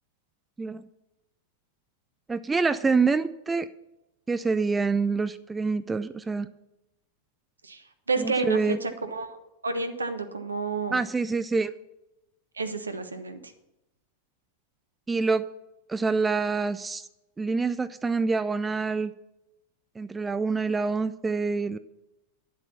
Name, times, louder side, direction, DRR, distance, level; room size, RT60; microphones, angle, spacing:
voice 1, 2.3-3.7 4.3-6.5 8.2-8.8 10.9-11.7 15.1-15.5 15.9-17.1 17.4-19.1 20.0-21.8, right 4 dB, 10° right, 14 dB, 0.4 m, -26 dB
voice 2, 7.6-9.4 9.6-11.0 12.5-13.5, right 3 dB, 75° right, 8 dB, 1.1 m, -30 dB
10.5 x 7.6 x 5.8 m, 0.93 s
figure-of-eight pair, 90°, 0 cm